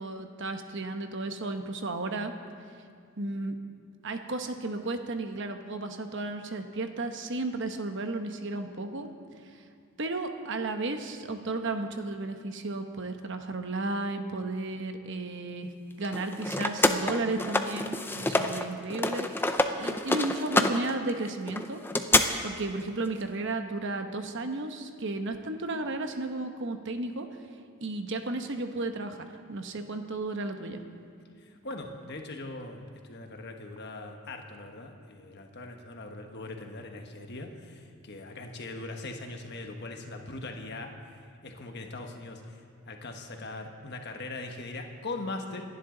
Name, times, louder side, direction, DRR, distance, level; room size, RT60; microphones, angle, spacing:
voice 1, 0.0-2.3 3.2-3.6 4.0-9.1 9.4-9.6 10.0-15.7 16.0-21.8 22.4-27.3 27.8-30.8, right 2 dB, 55° right, 6 dB, 1.0 m, -34 dB
sound 1, 16.0-18.6 18.9-22.2, left 2 dB, 10° left, 0.5 m, -27 dB
voice 2, 18.1-18.4 31.4-40.9 41.4-45.6, left 2 dB, 50° left, 3 dB, 1.4 m, -40 dB
27.0 x 11.0 x 3.9 m, 2.2 s
head